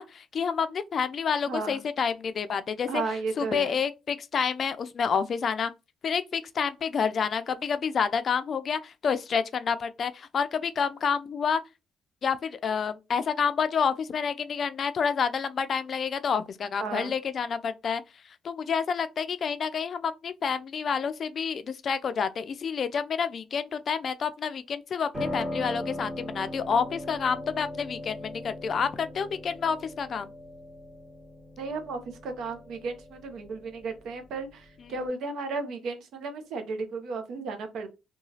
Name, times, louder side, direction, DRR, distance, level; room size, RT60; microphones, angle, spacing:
voice 1, 0.0-3.0 3.4-5.7 6.0-11.6 12.2-18.0 18.4-30.3, left 6 dB, 50° left, 0.3 m, -29 dB
voice 2, 1.5-1.8 2.9-3.8 16.8-17.1 31.6-37.9, right 4 dB, 75° right, 0.6 m, -34 dB
Piano, 25.1-35.1, left 1 dB, 15° right, 1.5 m, -39 dB
2.8 x 2.3 x 2.7 m
cardioid pair, 90°, 0 cm